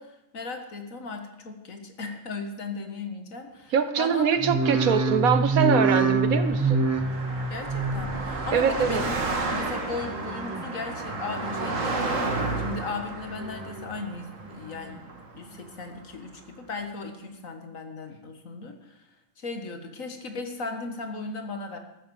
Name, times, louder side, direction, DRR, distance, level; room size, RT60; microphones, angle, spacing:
voice 1, 0.0-4.4 7.5-9.1 9.4-15.0 15.4-19.1 19.4-21.8, left 3 dB, 70° left, 6 dB, 2.0 m, -37 dB
voice 2, 3.7-6.8 8.5-9.0, right 7 dB, 80° right, 10 dB, 1.5 m, -23 dB
sound 1, 4.4-9.7 10.0-10.6 11.1-11.8 12.2-12.9 13.3-14.0 14.4-15.0 15.5-15.6, right 3 dB, 15° right, 0.8 m, -28 dB
Car passing by, 4.4-15.9, right 3 dB, 65° right, 2.2 m, -33 dB
13.5 x 9.4 x 7.0 m, 0.95 s
omnidirectional pair, 1.5 m